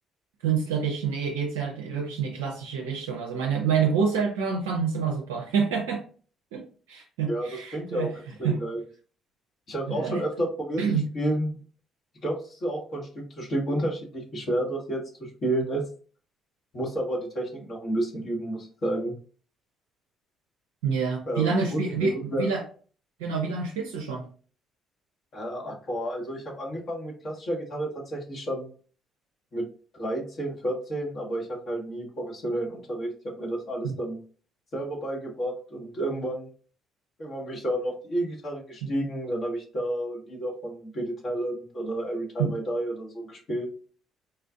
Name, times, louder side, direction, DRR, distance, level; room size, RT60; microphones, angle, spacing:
voice 1, 0.4-6.0 6.5-8.2 8.4-8.6 9.9-10.2 10.8-11.1 20.8-22.6 23.2-24.3 33.8-33.9 42.4-42.5, right 6 dB, 80° right, 1 dB, 0.4 m, -27 dB
voice 2, 7.3-8.8 9.7-10.8 11.1-11.5 12.2-15.8 16.7-19.1 21.2-22.5 25.3-28.7 29.5-29.7 29.9-34.2 34.7-36.5 37.2-43.7, right 1 dB, 50° left, -2 dB, 1.4 m, -31 dB
4.2 x 2.4 x 2.3 m, 0.41 s
hypercardioid pair, 50°, 0 cm